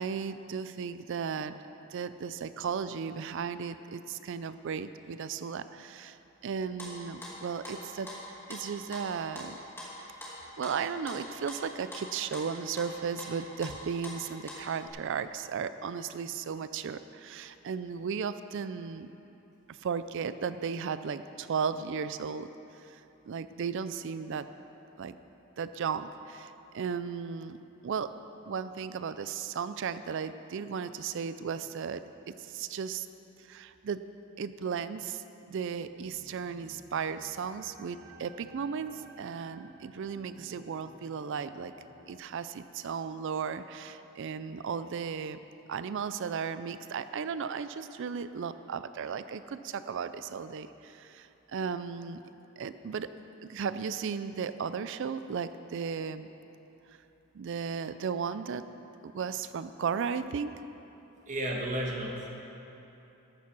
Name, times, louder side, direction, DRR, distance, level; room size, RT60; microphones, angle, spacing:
voice 1, 0.0-1.6 1.9-6.2 6.4-8.2 8.5-9.6 10.6-19.1 19.7-22.5 22.8-24.5 25.0-25.2 25.6-27.6 27.8-28.1 28.5-33.1 33.4-34.0 34.4-41.7 42.1-45.4 45.7-52.2 52.6-53.1 53.4-56.3 57.3-58.6 59.0-60.5, right 6 dB, 60° right, 12 dB, 0.4 m, -35 dB
sound 1, 6.5-7.8 8.1-14.9, left 1 dB, 10° left, 2.4 m, -44 dB
sound 2, 36.0-42.2, right 2 dB, 85° right, 2.3 m, -56 dB
voice 2, 61.3-62.3, right 1 dB, 35° right, -1 dB, 1.6 m, -33 dB
14.5 x 7.2 x 6.1 m, 2.9 s
head